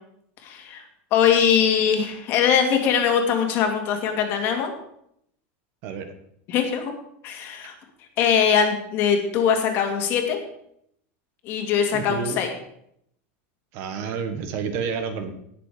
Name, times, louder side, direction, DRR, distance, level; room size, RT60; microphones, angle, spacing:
voice 1, 0.4-0.8 1.1-4.7 6.5-6.9 7.2-7.7 8.2-10.4 11.4-12.5, left 7 dB, 35° left, 4 dB, 2.1 m, -21 dB
voice 2, 11.9-12.4 13.7-15.3, right 6 dB, 40° right, 8 dB, 1.4 m, -30 dB
18.5 x 6.8 x 5.0 m, 0.73 s
supercardioid pair, 175°, 7 cm